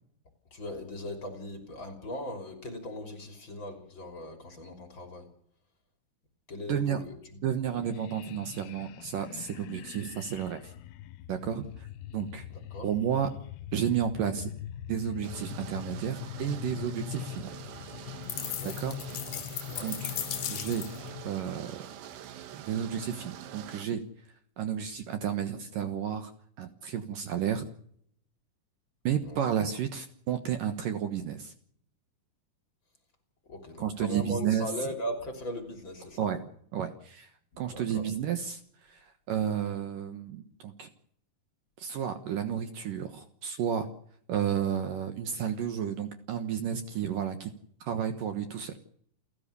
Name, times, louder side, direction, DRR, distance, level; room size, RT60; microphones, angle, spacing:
voice 1, 0.5-5.3 6.5-7.4 7.7-7.9 12.5-12.9 18.6-18.9 19.3-19.9 29.2-29.4 33.5-36.3 37.6-38.1, left 1 dB, 30° left, 4 dB, 3.5 m, -39 dB
voice 2, 6.7-7.0 7.4-10.7 11.3-11.9 12.1-12.5 12.8-13.3 13.7-14.5 14.9-17.5 18.8-18.9 19.8-20.1 20.5-20.9 21.2-21.8 22.5-24.0 24.6-26.3 26.6-27.7 29.0-31.5 33.8-34.7 36.2-36.4 36.7-37.3 37.6-38.6 38.9-40.9 41.8-43.9 44.3-47.5 47.8-48.7, right 9 dB, 65° right, 7 dB, 2.6 m, -32 dB
sound 1, 7.8-21.3, left 13 dB, 75° left, 2.9 m, -43 dB
sound 2, 15.2-23.9, right 10 dB, 90° right, 3.4 m, -45 dB
sound 3, 18.3-21.1, left 10 dB, 60° left, 2.4 m, -37 dB
29.5 x 13.0 x 6.9 m, 0.66 s
omnidirectional pair, 4.8 m